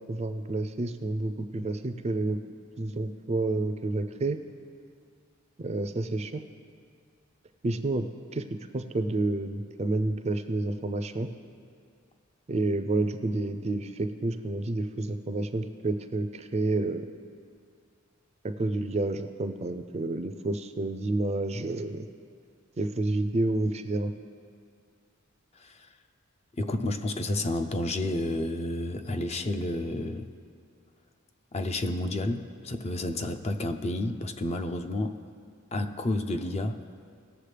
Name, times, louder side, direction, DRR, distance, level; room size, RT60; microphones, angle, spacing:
voice 1, 0.1-2.4 2.8-4.4 5.6-6.4 7.6-8.1 8.3-8.4 8.7-11.3 12.5-17.1 18.4-22.1 22.8-24.1, right 2 dB, 30° right, 9 dB, 0.4 m, -29 dB
voice 2, 25.6-25.9 26.6-30.3 31.5-35.2 35.7-36.8, left 1 dB, 30° left, 7 dB, 0.5 m, -30 dB
19.0 x 7.0 x 3.3 m, 2.2 s
head